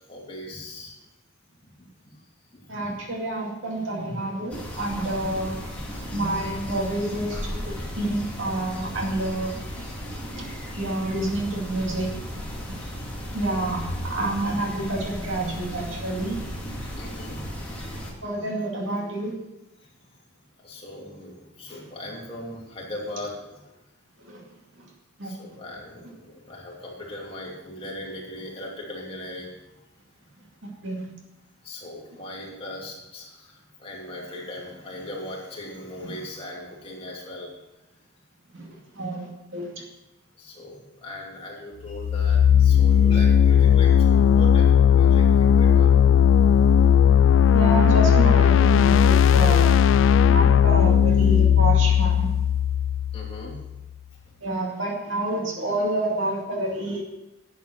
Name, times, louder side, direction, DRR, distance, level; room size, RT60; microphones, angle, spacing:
voice 1, 0.1-1.0 2.5-2.9 5.8-6.1 17.0-17.5 18.0-18.2 20.6-23.6 25.2-29.5 31.6-37.5 40.4-46.2 53.1-53.6, left 1 dB, 25° left, -3 dB, 2.8 m, -39 dB
voice 2, 2.7-5.6 6.1-9.5 10.4-10.5 10.8-12.1 13.3-16.4 18.2-19.4 24.2-24.4 24.8-24.9 25.2-25.3 30.6-31.1 36.0-36.1 38.5-38.7 38.9-39.8 47.5-49.7 50.3-52.3 54.4-57.0, right 1 dB, 65° right, 0 dB, 2.4 m, -28 dB
sound 1, 4.5-18.1, equal, 5° left, 2.2 m, -35 dB
sound 2, 41.9-53.7, left 9 dB, 70° left, 0.3 m, -17 dB
11.0 x 8.3 x 6.0 m, 0.96 s
head